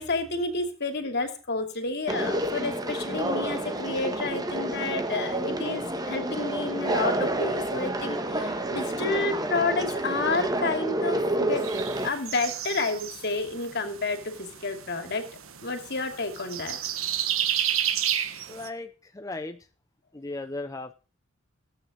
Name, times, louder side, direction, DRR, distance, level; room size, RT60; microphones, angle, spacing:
voice 1, 0.0-11.6 12.0-15.2 15.6-16.8, left 3 dB, 55° left, 6 dB, 2.5 m, -30 dB
Conversation, 2.1-12.1, right 1 dB, 20° right, 1.2 m, -29 dB
sound 1, 11.6-18.7, right 10 dB, 80° right, 1.2 m, -32 dB
voice 2, 18.5-19.7 20.1-20.9, left 2 dB, 15° left, 7 dB, 0.5 m, -36 dB
16.5 x 8.6 x 5.2 m, 0.37 s
head